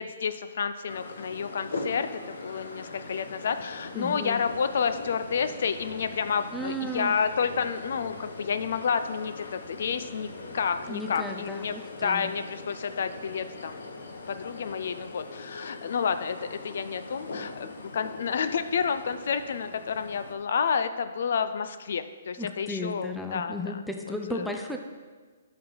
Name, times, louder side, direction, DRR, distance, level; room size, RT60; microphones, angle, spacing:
voice 1, 0.0-10.3 10.5-11.7 12.0-13.8 14.3-23.8 24.3-24.6, left 6 dB, 60° left, 11 dB, 0.5 m, -30 dB
sound 1, 0.9-20.3, left 3 dB, 85° left, 1.1 m, -41 dB
voice 2, 3.9-4.4 6.5-7.1 10.9-12.3 22.4-24.8, left 1 dB, ahead, 3 dB, 0.4 m, -35 dB
11.0 x 5.7 x 3.9 m, 1.4 s
hypercardioid pair, 165°, 0 cm